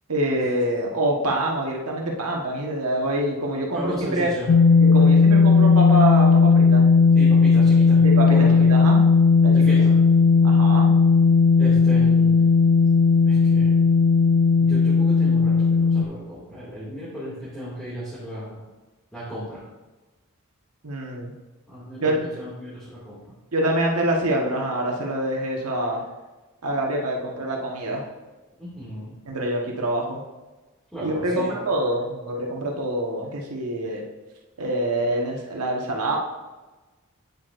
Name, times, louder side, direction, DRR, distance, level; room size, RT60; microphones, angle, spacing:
voice 1, 0.1-4.3 4.8-6.9 8.0-9.0 9.4-9.7 10.4-10.9 20.8-21.3 22.0-22.3 23.5-26.0 26.6-28.0 29.3-30.2 31.0-34.0 34.6-36.2, right 1 dB, 90° right, -1 dB, 1.4 m, -25 dB
voice 2, 3.7-4.5 7.1-8.0 8.3-8.6 9.5-9.9 11.6-12.3 13.3-13.7 14.6-18.6 19.1-19.6 21.7-23.3 28.6-29.1 30.9-31.5, equal, 5° left, -11 dB, 2.3 m, -35 dB
sound 1, 4.5-16.0, left 4 dB, 50° left, 0.3 m, -16 dB
8.5 x 7.8 x 2.6 m, 1.2 s
head